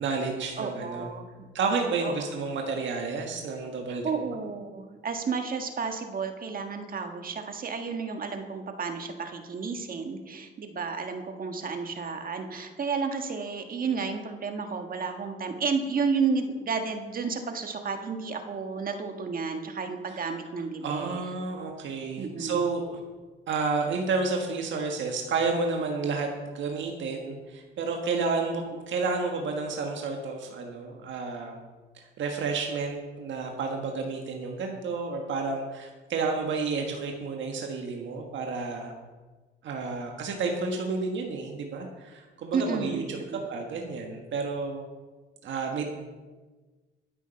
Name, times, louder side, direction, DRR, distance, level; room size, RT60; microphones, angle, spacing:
voice 1, 0.0-1.1 1.5-4.1 20.1-20.2 20.8-23.0 23.5-31.6 31.9-38.9 39.6-43.2 43.5-44.8 45.4-45.8, right 4 dB, 70° right, 2 dB, 1.5 m, -31 dB
voice 2, 0.6-1.5 2.0-2.1 3.9-21.3 22.2-22.6 42.5-43.4, right 5 dB, 45° right, 5 dB, 1.6 m, -32 dB
12.0 x 8.4 x 5.8 m, 1.3 s
cardioid pair, 90°, 20 cm